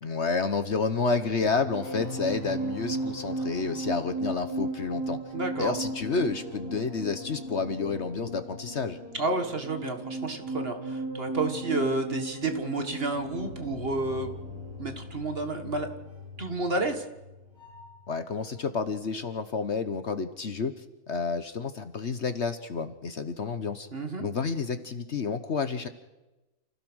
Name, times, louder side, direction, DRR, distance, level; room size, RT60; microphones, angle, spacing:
voice 1, 0.0-5.2 5.6-9.0 18.1-23.9 24.2-25.9, left 4 dB, 50° left, 10 dB, 1.3 m, -30 dB
sound 1, 1.4-18.1 18.3-18.6, right 2 dB, 65° right, 7.2 m, -36 dB
voice 2, 5.3-5.7 9.2-14.3 14.8-15.9 16.4-17.0 23.9-24.3, right 2 dB, 40° right, 6 dB, 2.0 m, -30 dB
29.5 x 16.0 x 6.3 m, 1.0 s
omnidirectional pair, 1.6 m